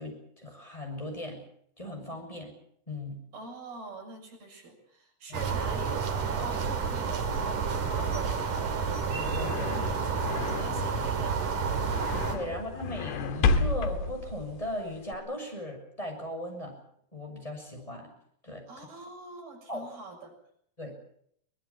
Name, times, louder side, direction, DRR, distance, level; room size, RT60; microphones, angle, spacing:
voice 1, 0.0-1.4 1.8-2.5 2.9-3.2 5.3-5.4 9.0-10.2 12.3-16.8 17.1-18.1 18.4-18.6 19.7-19.9 20.8-20.9, left 1 dB, 10° left, 2 dB, 6.9 m, -38 dB
voice 2, 3.3-8.8 10.3-11.8 12.5-12.7 18.7-20.3, right 3 dB, 70° right, 1 dB, 8.9 m, -44 dB
sound 1, 5.3-12.4, right 5 dB, 55° right, 4.1 m, -30 dB
sound 2, 8.8-15.1, left 4 dB, 90° left, 3.6 m, -32 dB
24.0 x 20.5 x 7.3 m, 0.69 s
omnidirectional pair, 4.6 m